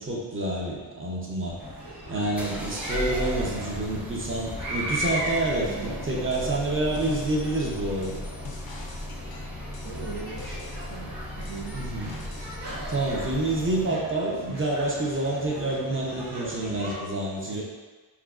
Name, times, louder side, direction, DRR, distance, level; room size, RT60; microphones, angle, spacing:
voice 1, 0.0-1.6 2.1-8.2 11.7-12.1 12.9-17.6, right 2 dB, 30° right, -3 dB, 0.7 m, -28 dB
sound 1, 1.4-14.0, left 1 dB, 5° right, 0.3 m, -37 dB
sound 2, 1.6-17.0, equal, 60° right, 1.2 m, -38 dB
sound 3, 6.3-6.6 6.9-11.0 11.4-12.6 12.9-13.0, left 4 dB, 55° left, 0.5 m, -46 dB
voice 2, 9.8-10.5 10.9-11.8 17.5-17.6, right 6 dB, 85° right, -1 dB, 0.5 m, -40 dB
4.6 x 2.3 x 2.4 m, 1.4 s
wide cardioid pair, 70°, 45 cm